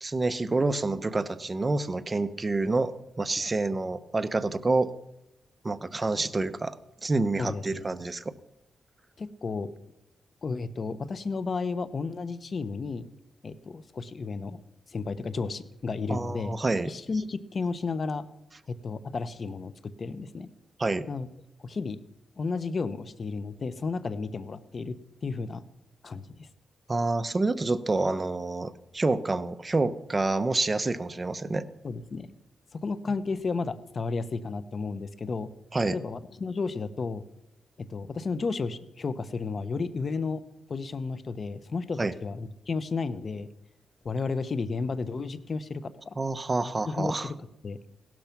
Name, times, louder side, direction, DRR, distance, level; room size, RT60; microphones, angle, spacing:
voice 1, 0.0-2.9 3.2-4.9 5.6-6.8 7.0-8.3 16.1-16.9 20.8-21.1 26.9-31.7 35.7-36.0 42.0-42.1 46.2-47.3, right 3 dB, 25° right, 12 dB, 0.9 m, -28 dB
voice 2, 7.4-8.0 9.2-9.7 10.4-13.1 13.4-14.6 14.9-16.6 16.9-18.3 18.7-20.5 21.1-21.3 21.6-22.0 22.4-25.6 26.0-26.5 31.8-32.3 32.7-35.5 35.9-37.2 37.8-40.4 40.7-43.5 44.0-46.2 46.9-47.8, left 4 dB, 45° left, 14 dB, 1.0 m, -33 dB
17.0 x 12.5 x 6.0 m, 0.88 s
cardioid pair, 90°, 0 cm